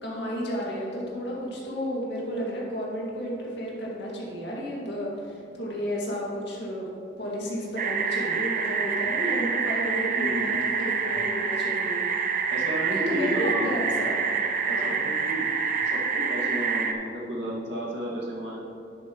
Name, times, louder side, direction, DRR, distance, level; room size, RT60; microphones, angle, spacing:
voice 1, 0.0-6.8 7.2-12.5 12.9-14.3 14.7-14.9, equal, 55° left, -4 dB, 2.1 m, -32 dB
sound 1, 7.8-16.9, right 5 dB, 40° right, 0.6 m, -27 dB
voice 2, 10.1-10.5 12.5-13.8 14.7-15.5 15.8-18.6, equal, 65° right, -5 dB, 2.1 m, -33 dB
10.5 x 7.9 x 3.1 m, 2.7 s
head